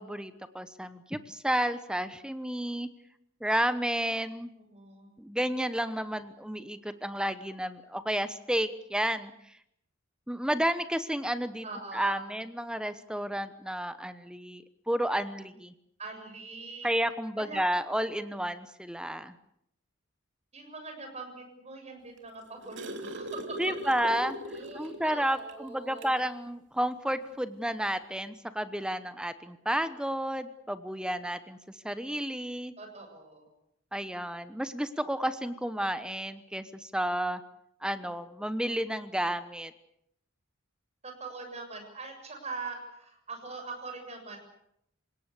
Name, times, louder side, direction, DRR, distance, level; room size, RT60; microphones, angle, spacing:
voice 1, 0.0-2.9 3.4-4.5 5.2-9.3 10.3-11.6 11.9-15.7 16.8-19.3 23.6-24.3 24.7-31.6 31.8-32.7 33.9-37.4 37.8-39.7, right 1 dB, 5° right, 12 dB, 1.0 m, -31 dB
voice 2, 4.7-5.1 11.6-12.3 16.0-16.9 17.4-17.6 20.5-23.6 24.5-26.2 32.8-33.5 41.0-44.4, right 3 dB, 35° right, 4 dB, 7.1 m, -42 dB
sound 1, 22.2-25.1 25.5-25.6 26.0-26.2 27.3-27.4, right 1 dB, 60° right, 3.0 m, -40 dB
28.0 x 17.5 x 8.3 m, 0.75 s
head